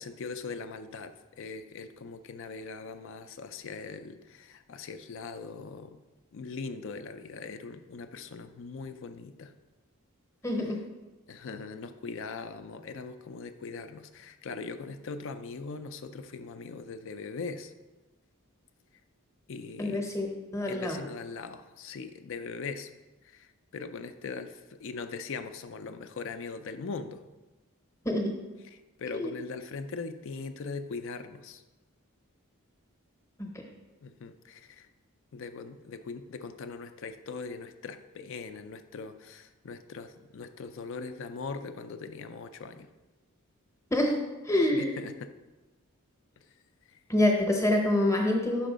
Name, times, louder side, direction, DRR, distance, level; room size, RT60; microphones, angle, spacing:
voice 1, 0.0-6.0 6.3-9.5 11.3-17.7 19.5-20.1 20.7-22.9 23.2-27.2 28.7-31.6 34.0-34.9 35.3-42.9 44.7-45.3 46.9-47.0, left 4 dB, 60° left, 10 dB, 0.4 m, -40 dB
voice 2, 10.4-10.8 19.8-21.0 28.0-28.3 29.1-29.3 33.4-33.5 43.9-44.2 44.4-45.0 47.1-48.7, left 1 dB, 15° left, 2 dB, 0.8 m, -26 dB
5.7 x 4.5 x 5.1 m, 1.1 s
head